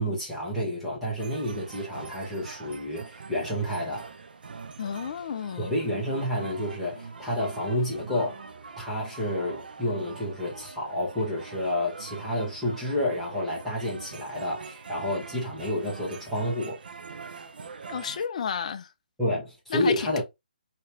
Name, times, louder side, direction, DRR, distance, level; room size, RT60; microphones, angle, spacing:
voice 1, 0.0-4.1 5.6-8.5 8.8-16.8 19.2-20.2, left 1 dB, ahead, 1.2 m, -30 dB
sound 1, 1.2-18.3, right 5 dB, 65° right, 0.6 m, -44 dB
voice 2, 4.8-5.7 17.9-18.9 19.7-20.2, left 7 dB, 40° left, 0.4 m, -32 dB
3.2 x 2.9 x 2.9 m
hypercardioid pair, 165°, 5 cm